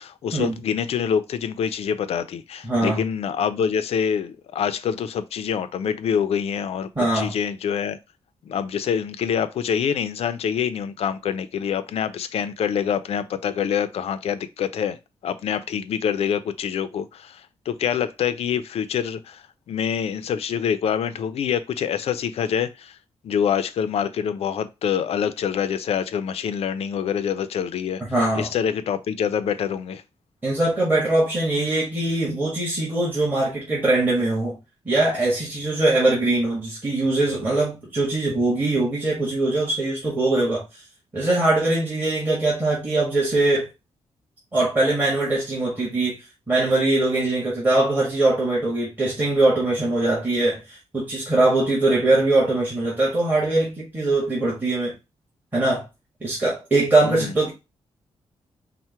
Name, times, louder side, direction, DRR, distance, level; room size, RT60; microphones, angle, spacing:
voice 1, 0.0-8.0 8.5-15.0 15.2-17.4 17.7-23.0 23.2-28.0 28.4-30.0 57.0-57.3, left 8 dB, 65° left, 0.5 m, -26 dB
voice 2, 2.6-3.0 6.9-7.3 28.0-28.5 30.4-34.6 34.8-40.6 41.1-43.7 44.5-46.2 46.5-50.6 50.9-54.9 55.5-55.8 56.2-57.5, right 2 dB, 15° right, 1.5 m, -21 dB
4.5 x 2.1 x 4.3 m
wide cardioid pair, 160°, 11 cm